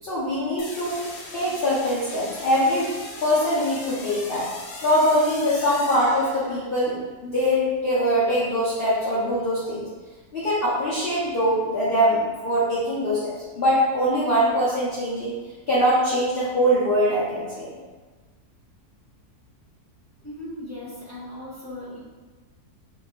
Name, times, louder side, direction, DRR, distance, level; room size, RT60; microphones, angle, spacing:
voice 1, 0.0-1.0 1.3-2.9 3.2-4.5 4.8-9.9 10.3-15.3 15.7-17.8, equal, 45° left, -8 dB, 0.8 m, -23 dB
sound 1, 0.6-6.7, left 2 dB, 70° left, 1.2 m, -39 dB
voice 2, 20.2-22.0, left 1 dB, 10° left, -9 dB, 1.1 m, -37 dB
5.3 x 2.7 x 2.5 m, 1.4 s
omnidirectional pair, 1.7 m